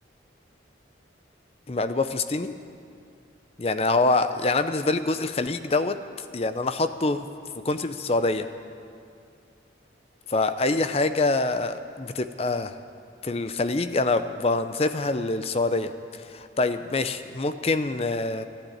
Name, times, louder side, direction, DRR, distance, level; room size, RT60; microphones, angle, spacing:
voice 1, 1.7-2.5 3.6-6.0 6.3-7.3 7.6-8.5 10.3-12.7 13.2-18.4, left 3 dB, 30° left, 10 dB, 0.6 m, -25 dB
13.0 x 12.0 x 8.7 m, 2.4 s
head